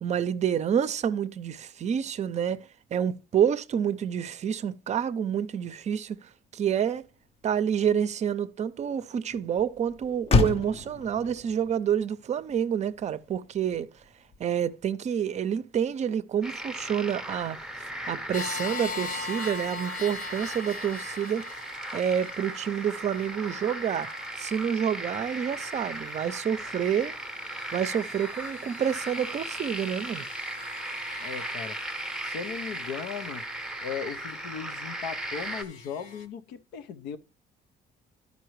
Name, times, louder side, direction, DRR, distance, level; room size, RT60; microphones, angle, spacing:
voice 1, 0.0-6.2 6.5-7.0 7.4-13.9 14.4-21.5 21.9-24.1 24.4-27.1 27.7-30.2, right 8 dB, 40° right, 0.5 m, -28 dB
Motor vehicle (road), 6.1-14.8, left 4 dB, 35° left, 0.6 m, -33 dB
sound 1, 16.4-35.6, right 1 dB, 5° right, 0.8 m, -37 dB
sound 2, 18.3-36.3, left 4 dB, 55° left, 1.2 m, -42 dB
voice 2, 31.2-31.8 32.2-33.4 33.8-37.2, left 7 dB, 90° left, 0.7 m, -37 dB
12.5 x 5.3 x 3.1 m
cardioid pair, 110°, 17 cm